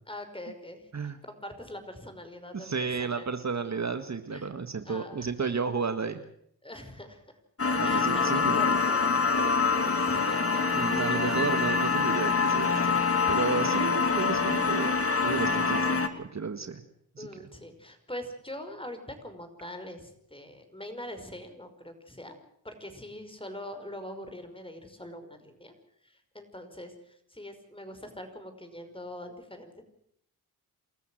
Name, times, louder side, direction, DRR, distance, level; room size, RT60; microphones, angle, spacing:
voice 1, 0.1-3.3 4.3-4.5 4.8-5.3 6.6-7.2 7.8-10.6 13.5-13.9 17.2-22.4 22.6-25.7 26.0-29.8, left 1 dB, 15° left, 8 dB, 5.5 m, -43 dB
voice 2, 2.5-6.2 7.7-8.7 10.7-13.0 13.3-14.9 15.2-15.9 16.2-16.8 17.1-17.4, right 5 dB, 45° right, 9 dB, 1.9 m, -32 dB
sound 1, 7.6-16.1, left 4 dB, 35° left, 2.6 m, -25 dB
28.0 x 14.0 x 7.8 m, 0.69 s
cardioid pair, 70°, 39 cm